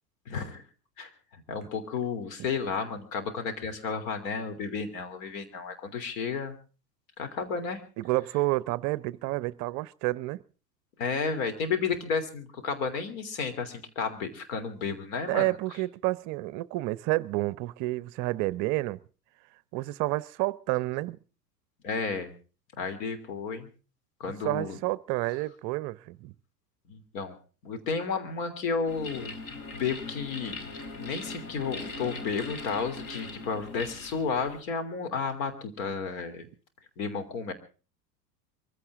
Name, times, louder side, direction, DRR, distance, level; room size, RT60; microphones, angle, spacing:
voice 1, 0.3-0.6 1.0-1.1 1.5-6.6 7.2-7.8 11.0-15.5 21.8-22.3 22.8-23.7 24.2-24.8 26.9-27.3 27.6-29.3 29.7-30.6 31.0-36.5 37.0-37.5, left 5 dB, 55° left, 3.3 m, -32 dB
voice 2, 8.0-10.4 15.3-19.0 19.7-21.2 24.4-26.3, right 19 dB, 35° right, 0.7 m, -29 dB
sound 1, 28.9-34.6, left 3 dB, 40° left, 3.6 m, -40 dB
23.0 x 15.5 x 3.6 m
figure-of-eight pair, 85°, 49 cm